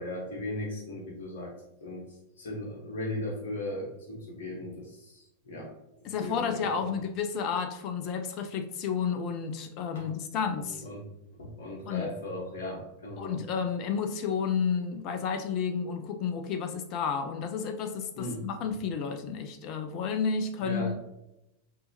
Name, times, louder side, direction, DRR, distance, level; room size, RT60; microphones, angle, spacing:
voice 1, 0.0-1.5 1.8-2.1 2.4-5.7 6.2-6.6 9.9-10.1 10.6-11.0 11.4-13.4 18.1-18.4 20.6-20.9, left 1 dB, 60° left, -2 dB, 1.2 m, -37 dB
voice 2, 6.0-10.9 11.9-12.1 13.2-21.0, left 6 dB, 40° left, 6 dB, 0.4 m, -31 dB
5.4 x 2.7 x 2.7 m, 0.87 s
figure-of-eight pair, 90°, 0 cm